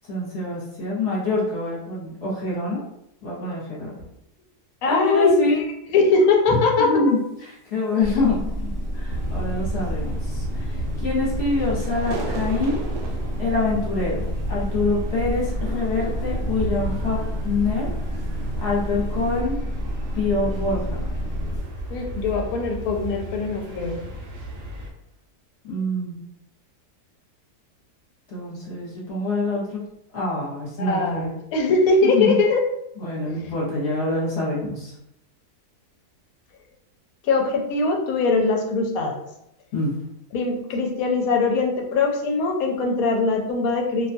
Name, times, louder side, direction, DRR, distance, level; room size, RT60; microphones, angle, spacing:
voice 1, 0.1-2.8 3.2-3.9 4.8-5.6 6.9-7.2 7.7-12.8 13.4-14.2 14.5-17.2 17.4-17.9 18.6-19.6 20.1-21.0 25.6-26.1 28.3-29.8 30.1-31.3 32.0-32.3 33.0-34.9 39.7-39.9, left 3 dB, 50° left, -7 dB, 1.0 m, -25 dB
voice 2, 4.8-6.9 21.9-24.0 30.8-32.6 33.2-33.3 37.2-39.2 40.3-44.1, left 3 dB, 70° left, 2 dB, 1.0 m, -21 dB
sound 1, 8.0-21.6, equal, 10° right, 0.5 m, -29 dB
sound 2, 9.1-24.9, right 1 dB, 65° right, 1.0 m, -34 dB
sound 3, 11.4-17.9 18.2-18.5 19.1-19.4, right 3 dB, 85° right, 1.1 m, -39 dB
2.6 x 2.3 x 2.6 m, 0.80 s
omnidirectional pair, 1.7 m